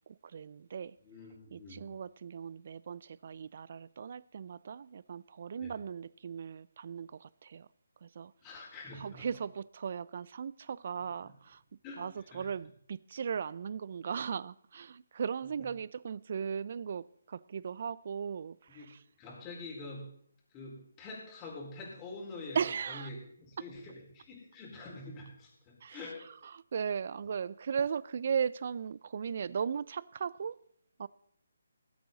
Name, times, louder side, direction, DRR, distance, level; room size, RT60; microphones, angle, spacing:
voice 1, 0.0-1.0 1.5-7.7 8.0-8.3 8.9-19.0 22.5-23.1 23.6-23.7 25.8-30.6 31.0-31.1, right 7 dB, 50° right, 0.4 m, -37 dB
voice 2, 1.0-1.9 5.6-5.7 8.4-9.3 11.8-12.0 12.3-12.4 18.7-18.9 19.2-20.1 20.5-22.6 22.9-26.2, left 2 dB, 20° left, 4.4 m, -46 dB
20.0 x 8.4 x 4.0 m
figure-of-eight pair, 150°, 0 cm